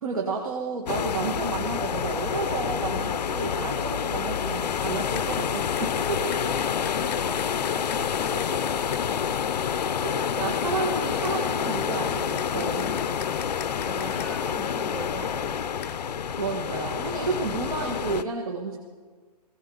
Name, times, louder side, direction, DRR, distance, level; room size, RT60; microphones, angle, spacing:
voice 1, 0.0-6.4 6.8-7.0 10.0-12.9 16.4-18.8, right 4 dB, 60° right, 1 dB, 1.7 m, -31 dB
sound 1, 0.9-18.2, left 8 dB, 85° left, 0.7 m, -28 dB
sound 2, 5.2-5.3 5.8-9.0 11.2-14.3 15.8-16.0, left 9 dB, 20° left, 0.6 m, -43 dB
voice 2, 6.3-9.2 12.7-13.4 13.8-15.6, right 1 dB, 10° right, 2 dB, 1.3 m, -41 dB
18.5 x 16.5 x 4.0 m, 1.5 s
hypercardioid pair, 175°, 21 cm